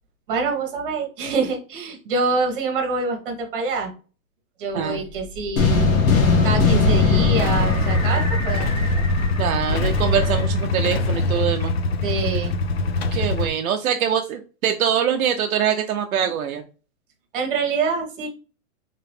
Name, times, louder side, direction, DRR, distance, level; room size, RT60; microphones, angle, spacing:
voice 1, 0.3-3.9 4.6-5.9 6.4-8.7 12.0-12.5 17.3-18.3, right 4 dB, 35° right, 2 dB, 1.4 m, -25 dB
sound 1, 4.7-10.8, right 1 dB, 20° left, 1.0 m, -30 dB
sound 2, 5.6-9.0, left 4 dB, 70° left, 1.5 m, -19 dB
Motorcycle / Engine starting / Idling, 7.4-13.5, left 2 dB, 45° left, 0.5 m, -23 dB
voice 2, 9.4-11.7 13.1-16.6, right 8 dB, 70° right, 5 dB, 0.6 m, -23 dB
3.7 x 2.8 x 3.4 m, 0.35 s
hypercardioid pair, 180°, 43 cm